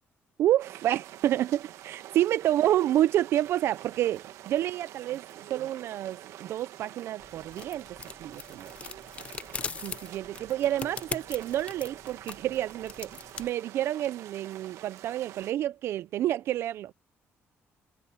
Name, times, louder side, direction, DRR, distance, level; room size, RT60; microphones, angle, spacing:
voice 1, 0.4-7.9 8.2-8.7 9.8-13.1 13.4-16.9, right 12 dB, 55° right, 0.3 m, -29 dB
sound 1, 0.6-15.5, right 13 dB, 75° right, 1.1 m, -47 dB
sound 2, 7.2-13.5, left 6 dB, 25° left, 0.5 m, -41 dB
cardioid pair, 170°, 5 cm